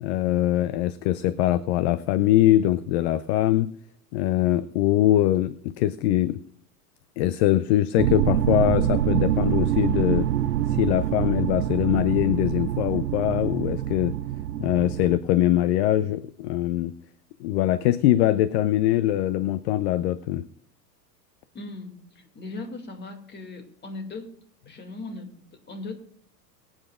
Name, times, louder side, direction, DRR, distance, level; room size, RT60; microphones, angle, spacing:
voice 1, 0.0-3.7 4.1-6.4 7.2-10.3 10.7-14.1 14.6-16.9 17.4-20.4, left 13 dB, 40° left, 15 dB, 0.6 m, -22 dB
sound 1, 8.0-15.2, right 11 dB, 75° right, 0.7 m, -25 dB
voice 2, 21.5-24.3 24.7-25.9, left 3 dB, 20° left, 6 dB, 2.3 m, -38 dB
23.0 x 8.9 x 2.4 m, 0.62 s
figure-of-eight pair, 90°, 49 cm